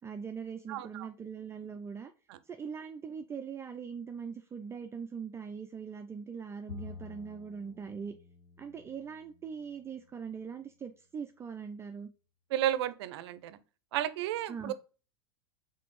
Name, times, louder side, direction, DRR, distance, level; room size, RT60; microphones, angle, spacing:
voice 1, 0.0-2.1 2.4-8.2 8.6-12.1 14.5-14.7, right 6 dB, 20° right, 0.4 m, -41 dB
voice 2, 0.7-1.1 12.5-13.6 13.9-14.7, right 12 dB, 70° right, 0.5 m, -32 dB
Bowed string instrument, 6.7-10.1, left 5 dB, 75° left, 0.9 m, -50 dB
4.1 x 3.9 x 3.1 m
hypercardioid pair, 105°, 14 cm